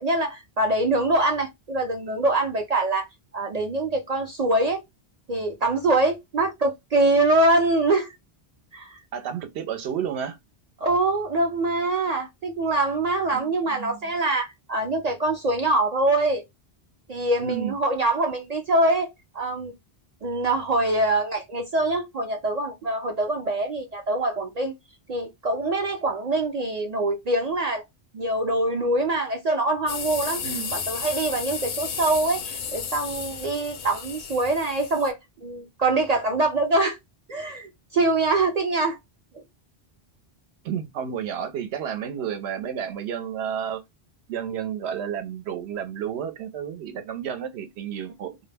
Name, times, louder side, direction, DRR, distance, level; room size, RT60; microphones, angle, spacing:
voice 1, 0.0-3.1 3.3-4.8 5.3-8.1 8.7-9.0 10.8-16.4 17.1-19.1 19.3-19.7 20.2-24.7 25.1-27.8 28.1-30.4 30.7-35.2 35.4-37.0 37.3-39.0, right 2 dB, 55° right, 0.4 m, -24 dB
voice 2, 9.1-10.4 13.3-14.0 17.4-17.8 30.4-30.7 40.6-43.8 44.3-48.4, right 8 dB, 85° right, 0.8 m, -31 dB
sound 1, 29.9-35.1, left 6 dB, 60° left, 0.6 m, -33 dB
2.2 x 2.0 x 3.2 m
omnidirectional pair, 1.1 m